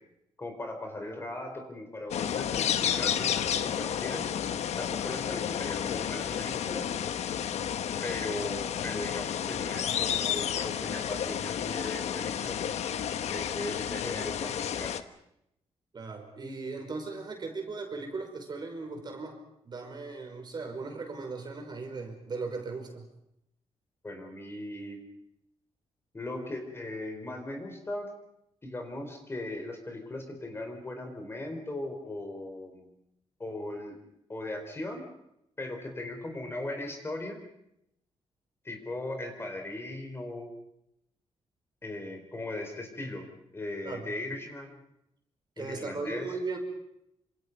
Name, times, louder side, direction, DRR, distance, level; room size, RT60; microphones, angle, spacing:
voice 1, 0.4-4.2 4.8-6.9 8.0-12.6 13.3-14.9 24.0-25.0 26.1-28.1 28.6-32.9 33.4-34.0 34.3-35.0 35.6-37.4 38.6-40.5 41.8-43.3 43.5-44.8 45.6-46.3, left 2 dB, 20° left, 4 dB, 4.4 m, -38 dB
sound 1, 2.1-15.0, left 9 dB, 80° left, 1.2 m, -31 dB
voice 2, 15.9-19.4 19.7-23.1 43.8-44.1 45.6-46.6, right 3 dB, 40° right, 3 dB, 5.3 m, -37 dB
27.5 x 26.5 x 5.4 m, 0.79 s
wide cardioid pair, 135°, 11 cm